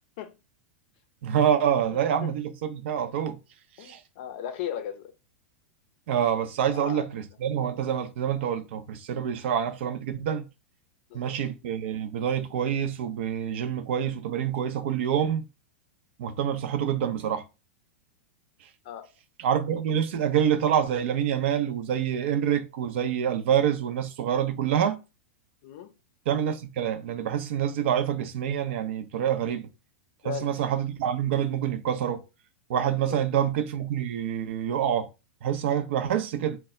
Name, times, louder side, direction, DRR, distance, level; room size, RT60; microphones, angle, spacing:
voice 1, 1.2-3.4 3.8-4.0 6.1-10.4 11.1-15.5 16.2-17.4 19.4-25.0 26.3-29.7 30.2-32.2 32.7-35.1 35.4-36.6, right 9 dB, 60° right, 0.5 m, -26 dB
voice 2, 1.9-2.4 3.8-5.1 6.7-7.1 11.1-11.4 18.8-19.1 25.6-25.9 30.2-30.6 33.1-33.2, left 10 dB, 55° left, 0.5 m, -37 dB
2.2 x 2.0 x 3.6 m
hypercardioid pair, 105°, 7 cm